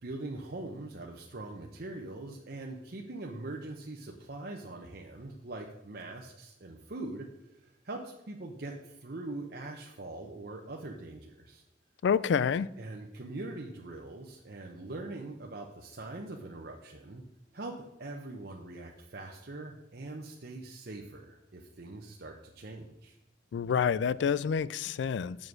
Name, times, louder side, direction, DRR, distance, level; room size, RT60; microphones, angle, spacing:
voice 1, 0.0-7.3 7.6-11.6 12.8-17.2 17.5-17.7 18.0-23.1, right 2 dB, 55° right, 0.8 m, -42 dB
voice 2, 12.0-12.7 23.5-25.4, left 7 dB, 75° left, 0.3 m, -28 dB
7.3 x 6.3 x 6.3 m
head